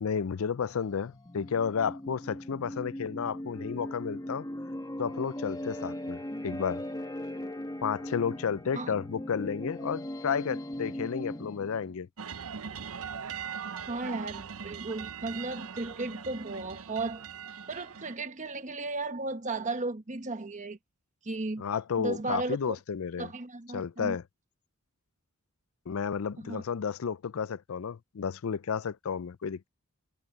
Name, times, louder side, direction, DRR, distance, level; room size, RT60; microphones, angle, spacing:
voice 1, 0.0-4.5 5.0-6.8 7.8-12.1 21.6-23.3 23.7-24.2 25.9-29.7, left 6 dB, 65° left, 0.4 m, -32 dB
sound 1, 0.6-12.0, left 1 dB, 15° left, 1.3 m, -39 dB
sound 2, 12.2-18.2, right 7 dB, 75° right, 0.8 m, -41 dB
voice 2, 13.9-17.3 17.7-20.8 21.2-21.6 22.0-22.8 23.2-24.2 26.4-26.6, right 2 dB, 35° right, 1.2 m, -35 dB
head